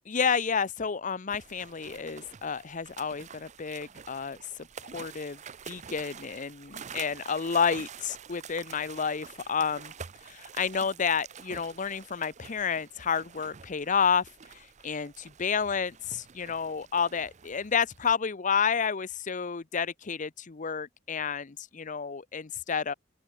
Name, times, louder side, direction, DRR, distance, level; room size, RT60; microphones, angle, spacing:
voice 1, 0.1-4.4 4.8-5.4 5.7-9.9 10.3-14.3 14.8-22.9, left 6 dB, 45° left, 0.7 m, -30 dB
sound 1, 1.3-18.1, right 7 dB, 40° right, 0.6 m, -48 dB
open air
head